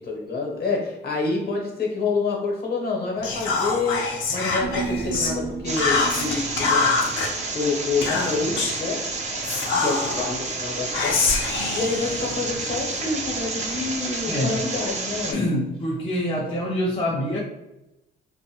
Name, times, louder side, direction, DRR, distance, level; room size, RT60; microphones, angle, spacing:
voice 1, 0.0-7.1 7.5-9.1 9.8-11.2 11.7-15.4, left 3 dB, 50° left, -1 dB, 0.9 m, -27 dB
Whispering, 3.2-5.4 5.8-7.3 8.0-8.8 9.4-10.3 10.9-12.8, left 4 dB, 75° left, 0.6 m, -25 dB
Human voice, 4.6-9.2 9.5-9.6, right 5 dB, 75° right, 0.7 m, -35 dB
sound 1, 5.6-15.3, right 3 dB, 35° right, 0.5 m, -30 dB
voice 2, 14.3-14.6 15.3-17.4, equal, 25° left, -4 dB, 0.5 m, -25 dB
2.6 x 2.1 x 2.7 m, 0.91 s
cardioid pair, 90°, 20 cm